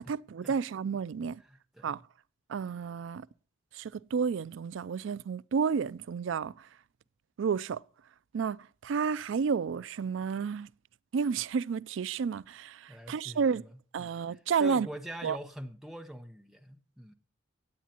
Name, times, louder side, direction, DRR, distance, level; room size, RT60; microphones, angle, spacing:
voice 1, 0.1-1.4 1.8-2.0 2.5-3.3 3.7-6.5 7.4-7.8 8.3-10.7 11.1-13.6 13.9-14.9 15.2-15.4, right 6 dB, 75° right, 0.4 m, -31 dB
voice 2, 1.4-1.9 12.9-13.7 14.0-17.1, equal, ahead, 0.9 m, -44 dB
18.0 x 8.3 x 2.9 m
head